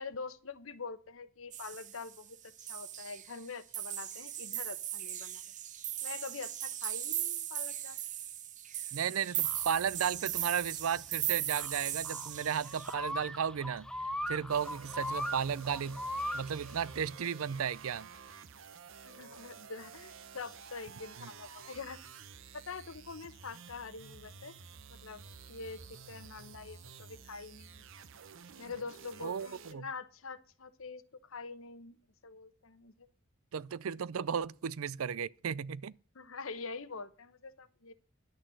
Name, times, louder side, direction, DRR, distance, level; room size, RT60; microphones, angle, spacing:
voice 1, 0.0-5.4 6.0-8.0 19.0-22.1 22.5-24.5 24.9-27.8 28.6-33.1 36.1-37.9, left 4 dB, 75° left, 1.0 m, -45 dB
sound 1, 1.5-2.2 2.6-3.5 3.7-12.9, right 12 dB, 35° right, 0.6 m, -38 dB
voice 2, 8.9-13.9 14.3-16.0 16.3-18.1 21.2-21.3 29.2-29.8 33.5-35.9, right 7 dB, 85° right, 0.5 m, -34 dB
sound 2, 9.4-17.1, left 1 dB, 5° left, 0.5 m, -40 dB
sound 3, 14.5-29.7, right 6 dB, 65° right, 0.8 m, -52 dB
11.0 x 6.4 x 7.7 m
head